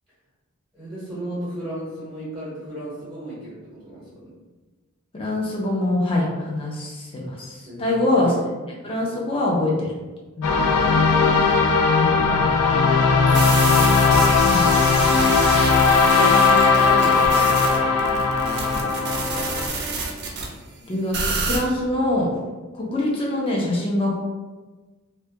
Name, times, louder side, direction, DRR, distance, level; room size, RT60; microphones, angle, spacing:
voice 1, 0.7-4.3 7.6-8.9 10.5-11.5 16.1-20.0, right 1 dB, ahead, -12 dB, 0.9 m, -35 dB
voice 2, 5.1-8.4 8.8-9.9 10.4-10.6 12.0-12.3 14.5-14.8 20.9-22.3 22.7-24.2, left 1 dB, 25° left, -3 dB, 0.5 m, -24 dB
sound 1, 10.4-19.7, left 4 dB, 90° left, 0.3 m, -18 dB
sound 2, 13.3-20.5 21.1-21.6, right 3 dB, 50° right, 0.4 m, -28 dB
2.2 x 2.1 x 2.8 m, 1.3 s
head